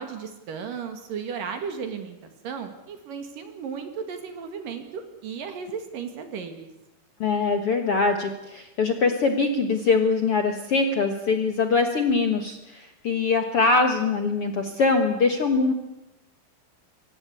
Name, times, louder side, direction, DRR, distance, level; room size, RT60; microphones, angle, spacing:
voice 1, 0.0-6.7, right 6 dB, 60° right, 7 dB, 3.2 m, -35 dB
voice 2, 7.2-15.7, left 4 dB, 70° left, 6 dB, 1.3 m, -23 dB
24.0 x 17.0 x 8.3 m, 0.93 s
omnidirectional pair, 4.9 m